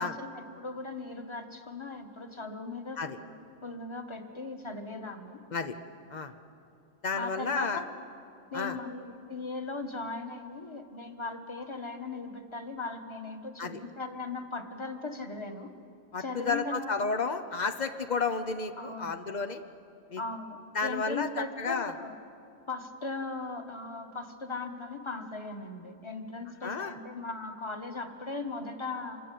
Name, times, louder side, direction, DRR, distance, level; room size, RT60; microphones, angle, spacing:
voice 1, 0.0-3.3 3.6-5.4 7.1-7.9 8.5-15.7 16.2-17.0 18.8-19.1 20.2-22.1 22.7-29.2, left 3 dB, 15° left, 6 dB, 1.3 m, -38 dB
voice 2, 7.0-7.8 8.5-8.8 13.6-13.8 16.1-19.6 20.1-20.2 20.7-21.9 26.6-27.0, left 4 dB, 75° left, 8 dB, 0.4 m, -32 dB
26.0 x 23.0 x 8.5 m, 2.7 s
omnidirectional pair, 2.1 m